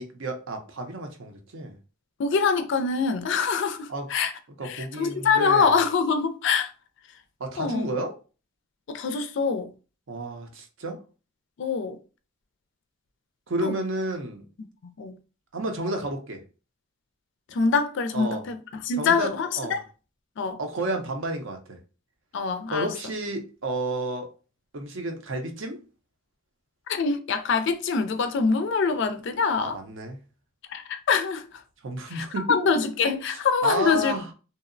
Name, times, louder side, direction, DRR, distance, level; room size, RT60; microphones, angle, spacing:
voice 1, 0.0-1.8 3.9-4.1 4.6-5.7 7.4-8.1 10.1-11.0 13.5-14.4 15.5-16.4 18.1-18.4 19.0-19.8 20.6-21.8 22.7-24.3 24.7-25.8 29.6-30.2 31.8-32.6 33.3-34.3, right 1 dB, 65° right, 0.5 m, -31 dB
voice 2, 2.2-4.3 4.6-6.7 7.6-7.9 8.9-9.7 11.6-12.0 13.6-13.7 14.8-15.1 17.5-18.6 18.8-19.8 20.4-20.6 22.3-22.9 26.9-29.8 30.7-31.5 32.1-34.3, left 5 dB, 60° left, 0.3 m, -24 dB
2.7 x 2.0 x 2.5 m
head